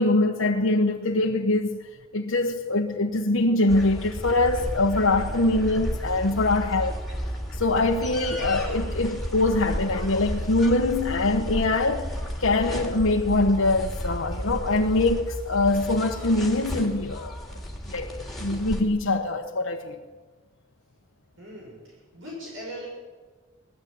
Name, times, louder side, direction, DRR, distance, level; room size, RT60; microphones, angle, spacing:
voice 1, 0.0-1.8 2.1-7.0 7.6-12.1 12.4-17.3 17.9-20.0, left 2 dB, 75° left, 1.3 m, -23 dB
sound 1, 3.7-18.8, equal, ahead, 3.2 m, -33 dB
voice 2, 21.4-21.8 22.1-22.9, equal, 70° right, 7.4 m, -39 dB
20.0 x 14.0 x 9.4 m
head